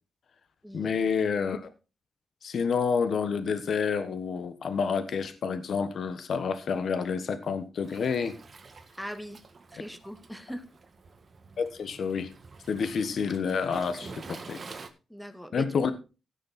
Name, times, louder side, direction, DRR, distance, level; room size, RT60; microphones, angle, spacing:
voice 1, 0.7-1.7 2.4-8.4 11.6-12.3 12.7-14.6 15.5-15.9, left 6 dB, 70° left, 1.3 m, -29 dB
Waves surf, 7.8-14.9, right 4 dB, 45° right, 1.7 m, -47 dB
voice 2, 9.0-9.4 9.7-10.6 15.1-15.7, equal, ahead, 1.8 m, -40 dB
16.5 x 6.6 x 4.2 m
cardioid pair, 95°, 0 cm